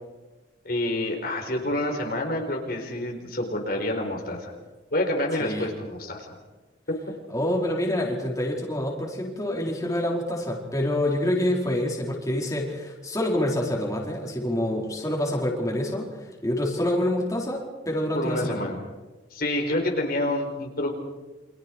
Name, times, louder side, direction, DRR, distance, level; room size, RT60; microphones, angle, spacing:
voice 1, 0.6-4.5 4.9-6.4 18.1-18.8 19.3-20.9, left 1 dB, 50° left, 2 dB, 4.6 m, -28 dB
voice 2, 7.3-18.7, left 1 dB, 15° left, -2 dB, 4.8 m, -27 dB
30.0 x 27.5 x 4.7 m, 1.2 s
head